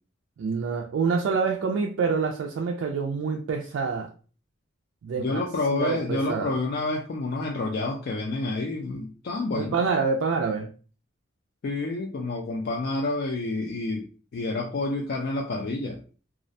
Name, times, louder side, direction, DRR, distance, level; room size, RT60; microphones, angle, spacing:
voice 1, 0.4-4.1 5.0-5.4 5.7-6.5 9.5-10.7, right 5 dB, 80° right, 2 dB, 0.3 m, -26 dB
voice 2, 5.2-9.8 11.6-16.0, left 2 dB, 55° left, 0 dB, 0.3 m, -29 dB
2.3 x 2.0 x 2.5 m, 0.38 s
head